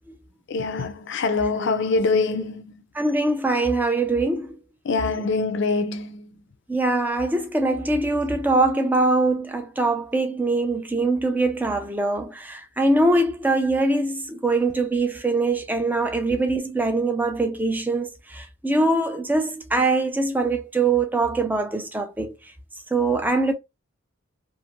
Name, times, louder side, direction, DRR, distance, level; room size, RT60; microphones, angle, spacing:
voice 1, 0.5-2.6 4.8-6.4, left 3 dB, 55° left, 0.4 m, -24 dB
voice 2, 2.9-4.6 6.7-22.3 22.9-23.5, right 2 dB, 10° right, 0.4 m, -23 dB
2.5 x 2.5 x 2.9 m
head